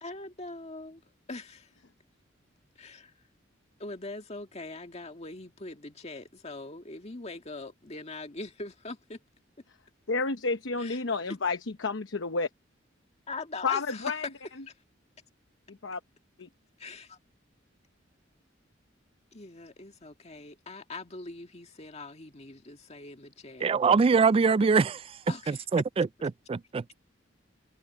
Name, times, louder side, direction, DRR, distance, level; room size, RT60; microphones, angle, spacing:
voice 1, 0.0-1.0 1.3-1.7 2.8-3.1 3.8-9.2 10.8-11.0 13.3-14.3 14.7-14.8 16.8-17.2 19.3-23.7 25.3-25.6, left 3 dB, 35° left, 2.0 m, -42 dB
voice 2, 10.1-12.5 13.6-14.3 15.7-16.0 16.4-16.5 24.4-24.5, left 4 dB, 75° left, 0.9 m, -30 dB
voice 3, 23.6-25.2 25.5-27.0, right 5 dB, 30° right, 0.3 m, -24 dB
head